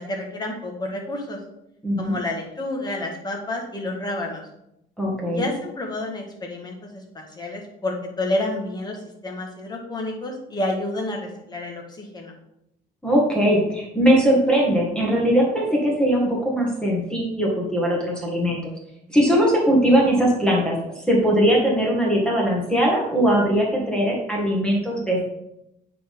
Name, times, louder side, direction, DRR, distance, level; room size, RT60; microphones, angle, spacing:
voice 1, 0.0-1.4 2.0-4.4 5.2-12.3, left 1 dB, 25° left, 0 dB, 1.6 m, -29 dB
voice 2, 5.0-5.4 13.0-18.7 19.1-25.2, equal, 5° left, -3 dB, 1.9 m, -20 dB
8.5 x 4.2 x 3.7 m, 0.82 s
cardioid pair, 110°, 17 cm